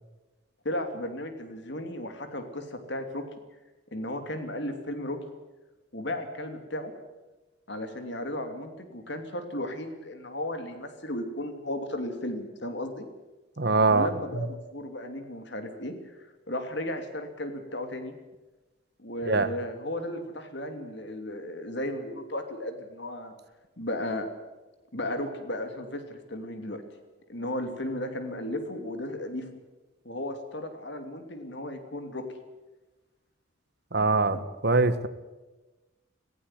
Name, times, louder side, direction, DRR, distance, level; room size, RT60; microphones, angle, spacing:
voice 1, 0.6-3.2 3.9-5.2 5.9-6.9 7.7-13.0 13.9-16.2 16.5-18.1 19.0-23.3 23.8-24.3 24.9-26.8 27.3-29.5 30.0-32.2 34.3-34.5, left 1 dB, 55° left, 7 dB, 2.9 m, -35 dB
voice 2, 13.6-14.1 19.3-19.5 33.9-34.4 34.6-35.1, right 3 dB, 50° right, 12 dB, 1.3 m, -22 dB
17.5 x 17.0 x 9.8 m, 1.1 s
head